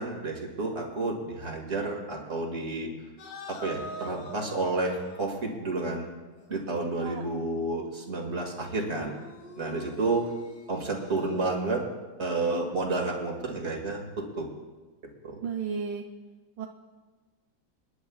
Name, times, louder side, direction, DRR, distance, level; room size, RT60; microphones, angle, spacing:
voice 1, 0.0-2.9 3.5-6.1 6.5-9.2 9.6-10.2 10.7-11.8 12.2-14.5 15.2-15.4, right 2 dB, 35° right, 1 dB, 2.3 m, -30 dB
sound 1, 3.2-5.4 6.4-6.7 8.8-11.6, equal, 90° left, 2.5 m, -44 dB
voice 2, 15.4-16.0 16.6-16.7, right 6 dB, 75° right, 2 dB, 1.3 m, -33 dB
28.5 x 10.5 x 2.4 m, 1.4 s
omnidirectional pair, 2.0 m